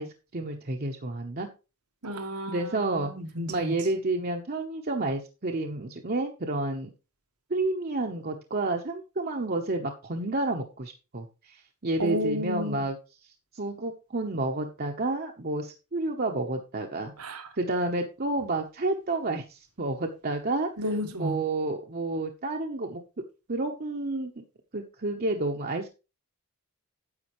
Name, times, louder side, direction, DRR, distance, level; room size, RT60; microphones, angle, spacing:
voice 1, 0.0-1.5 2.5-3.1 3.5-6.9 7.5-13.0 13.5-20.7 21.1-23.0 23.5-24.4 24.7-25.9, right 2 dB, 45° right, 1.0 m, -30 dB
voice 2, 2.0-3.8 12.0-12.9 17.2-17.5 20.8-21.4, equal, 85° right, 1.6 m, -32 dB
9.8 x 8.2 x 3.1 m
head